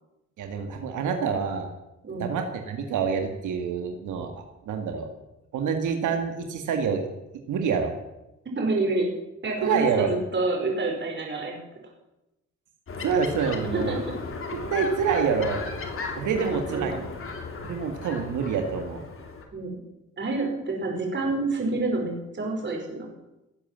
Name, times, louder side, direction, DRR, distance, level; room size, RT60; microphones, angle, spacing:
voice 1, 0.4-1.7 2.2-4.3 4.7-5.1 5.5-7.0 7.5-7.9 9.6-10.1 13.0-14.0 14.7-15.6 16.2-16.9 17.6-19.1, right 6 dB, 80° right, 5 dB, 2.1 m, -27 dB
voice 2, 8.5-9.1 9.4-11.6 13.7-14.1 16.3-17.0 19.5-19.8 20.2-23.1, right 3 dB, 40° right, 0 dB, 5.0 m, -28 dB
sound 1, 12.9-19.4, left 4 dB, 45° left, 3.0 m, -35 dB
17.5 x 8.6 x 7.6 m, 0.93 s
cardioid pair, 90°, 30 cm